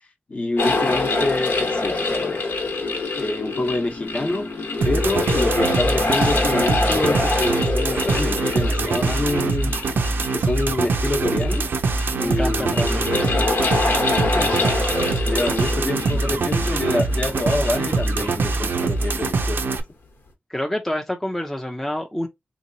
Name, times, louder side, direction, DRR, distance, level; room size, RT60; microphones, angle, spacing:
voice 1, 0.3-2.4 3.1-4.5 4.8-9.7 10.3-11.6 12.1-12.9 14.3-14.7 15.0-19.8, left 2 dB, 40° left, 0.9 m, -26 dB
sound 1, 0.6-19.2, left 3 dB, 70° left, 1.1 m, -26 dB
sound 2, 4.8-19.8, right 3 dB, 75° right, 0.6 m, -23 dB
voice 2, 12.1-13.1 20.5-22.3, left 1 dB, 5° left, 0.6 m, -27 dB
3.7 x 2.9 x 2.7 m
wide cardioid pair, 120°, 4 cm